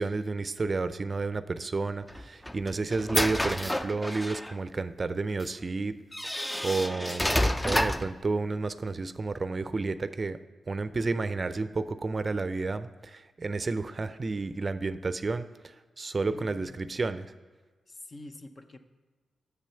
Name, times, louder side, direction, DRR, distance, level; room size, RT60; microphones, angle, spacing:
voice 1, 0.0-6.0 6.3-7.4 7.6-10.4 10.7-17.3, right 3 dB, 45° right, 13 dB, 0.4 m, -31 dB
sound 1, 2.1-4.5 5.4-5.5 6.1-8.2, left 1 dB, 10° left, 0.5 m, -29 dB
voice 2, 16.3-16.8 17.9-18.8, left 2 dB, 45° left, 8 dB, 0.7 m, -46 dB
7.4 x 6.9 x 5.6 m, 1.4 s
supercardioid pair, 50°, 0 cm